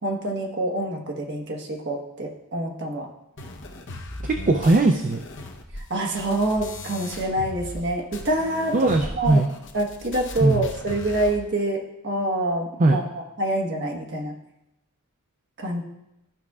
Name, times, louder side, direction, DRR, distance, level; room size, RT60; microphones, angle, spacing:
voice 1, 0.0-3.1 5.9-9.4 9.7-14.3 15.6-15.8, right 1 dB, 55° right, 1 dB, 1.3 m, -26 dB
sound 1, 3.4-7.8 8.1-11.4, left 1 dB, 60° left, 0.9 m, -37 dB
voice 2, 4.2-5.2 8.7-9.5 10.4-10.7 12.8-13.0, right 2 dB, 35° right, 4 dB, 0.4 m, -19 dB
13.5 x 5.8 x 2.4 m, 0.89 s
head